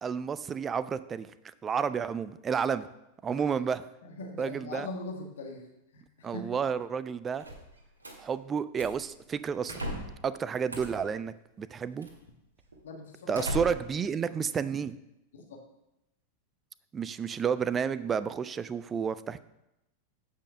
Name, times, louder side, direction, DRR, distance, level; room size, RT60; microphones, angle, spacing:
voice 1, 0.0-2.9 3.2-3.8 4.4-4.9 6.2-7.4 8.2-9.8 10.2-12.1 13.3-15.0 16.9-19.4, right 6 dB, 20° right, 15 dB, 0.4 m, -31 dB
voice 2, 4.0-5.6 5.9-6.5 12.8-13.5 15.3-15.6, left 3 dB, 60° left, 2 dB, 1.4 m, -41 dB
sound 1, 7.4-8.2 8.7-9.1 9.7-10.2 10.7-11.1 12.0-12.1 12.7-12.8 13.3-14.0, equal, 75° right, 1.7 m, -37 dB
8.4 x 5.5 x 6.1 m, 0.89 s
figure-of-eight pair, 90°, 0 cm